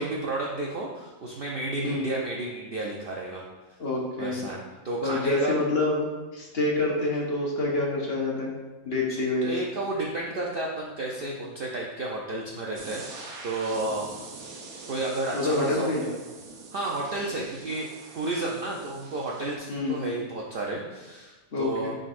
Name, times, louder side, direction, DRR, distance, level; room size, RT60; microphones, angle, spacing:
voice 1, 0.0-3.4 4.2-5.6 9.4-14.3 14.9-16.1 16.7-17.9 18.1-21.9, right 2 dB, 55° right, -2 dB, 0.7 m, -32 dB
voice 2, 3.8-4.5 5.0-6.1 6.3-8.5 8.9-9.5 15.3-16.1 19.7-20.1 21.5-21.9, left 2 dB, 45° left, -3 dB, 1.3 m, -27 dB
sound 1, 12.8-19.6, right 3 dB, 85° right, 1.4 m, -44 dB
10.0 x 3.9 x 2.5 m, 1.2 s
omnidirectional pair, 1.5 m